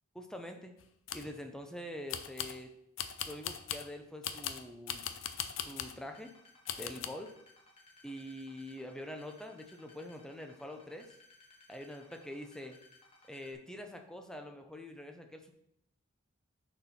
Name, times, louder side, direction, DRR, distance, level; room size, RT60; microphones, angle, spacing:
voice 1, 0.1-0.8 1.1-2.7 3.3-5.1 5.6-6.3 6.8-7.3 8.0-11.1 11.7-12.8 13.3-15.5, left 1 dB, 5° left, 4 dB, 0.7 m, -45 dB
sound 1, 0.8-1.3 2.1-2.6 3.0-3.9 4.2-6.0 6.7-7.1, left 9 dB, 65° left, 0.6 m, -39 dB
sound 2, 6.0-13.5, left 3 dB, 30° left, 1.7 m, -61 dB
6.7 x 4.4 x 5.8 m, 0.75 s
head